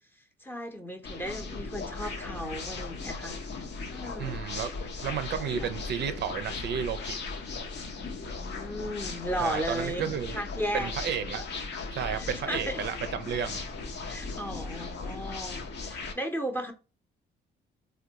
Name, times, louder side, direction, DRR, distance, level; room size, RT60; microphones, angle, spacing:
voice 1, 0.4-3.4 3.9-4.4 5.6-5.7 8.0-10.1 10.3-10.9 12.1-12.8 14.0-16.7, equal, 10° left, 0.7 m, -35 dB
sound 1, 1.0-16.1, left 3 dB, 60° left, 0.8 m, -37 dB
voice 2, 4.2-4.7 5.0-7.2 9.4-10.4 10.7-11.4 11.9-13.6, right 8 dB, 60° right, 0.4 m, -32 dB
3.5 x 2.2 x 2.8 m
cardioid pair, 90°, 20 cm